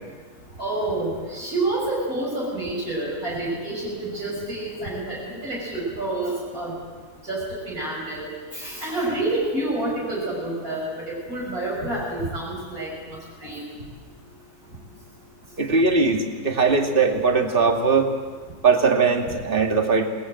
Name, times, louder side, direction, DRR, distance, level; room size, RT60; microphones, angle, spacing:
voice 1, 0.6-6.7 7.2-13.6, right 2 dB, 60° right, -5 dB, 7.0 m, -28 dB
voice 2, 15.6-18.1 18.6-20.1, right 4 dB, 35° right, 2 dB, 2.4 m, -20 dB
28.0 x 20.0 x 7.8 m, 1.5 s
omnidirectional pair, 1.7 m